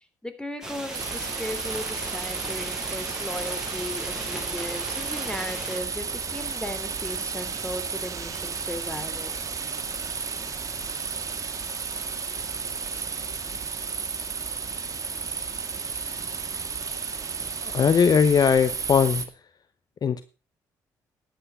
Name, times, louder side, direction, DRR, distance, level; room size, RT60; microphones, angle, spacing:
voice 1, 0.2-9.3, left 1 dB, 10° left, 10 dB, 3.2 m, -36 dB
sound 1, 0.6-5.8, right 1 dB, 5° right, 7.1 m, -37 dB
sound 2, 0.9-19.2, right 5 dB, 40° right, 2.2 m, -33 dB
voice 2, 17.6-19.2 20.0-20.2, left 6 dB, 45° left, 13 dB, 0.9 m, -20 dB
11.0 x 8.7 x 5.6 m, 0.33 s
hypercardioid pair, 60°, 9 cm